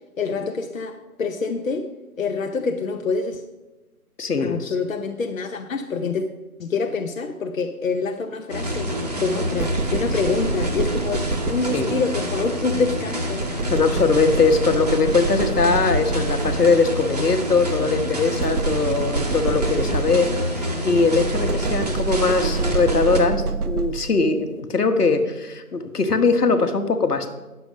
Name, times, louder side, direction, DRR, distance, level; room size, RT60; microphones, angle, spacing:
voice 1, 0.2-1.9 2.2-3.4 4.4-6.2 6.6-8.9 9.2-13.5, left 4 dB, 60° left, 5 dB, 0.8 m, -26 dB
voice 2, 4.2-4.7 11.7-11.9 13.7-27.3, left 4 dB, 85° left, 7 dB, 1.3 m, -21 dB
sound 1, 8.5-23.2, equal, 25° right, 0.8 m, -27 dB
sound 2, 9.6-12.1 13.4-17.0 18.4-20.6 21.2-24.3, right 4 dB, 75° right, 0.8 m, -27 dB
9.3 x 6.9 x 5.1 m, 1.1 s
figure-of-eight pair, 165°, 45 cm